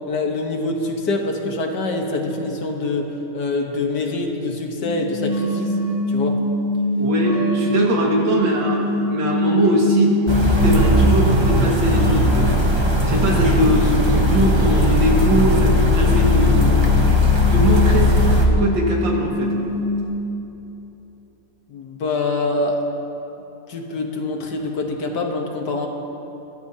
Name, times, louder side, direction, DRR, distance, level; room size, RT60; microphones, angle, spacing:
voice 1, 0.1-3.1 3.3-5.7 6.1-6.4 21.7-22.8 23.7-25.9, left 2 dB, 65° left, 2 dB, 1.7 m, -25 dB
sound 1, 4.8-20.0, left 1 dB, 35° left, 2.9 m, -25 dB
voice 2, 7.0-10.2 10.6-12.5 13.1-16.5 17.2-19.5, equal, 75° right, -2 dB, 2.6 m, -21 dB
sound 2, 10.3-18.5, left 1 dB, 20° right, 0.8 m, -17 dB
22.5 x 13.0 x 2.8 m, 3.0 s
omnidirectional pair, 2.1 m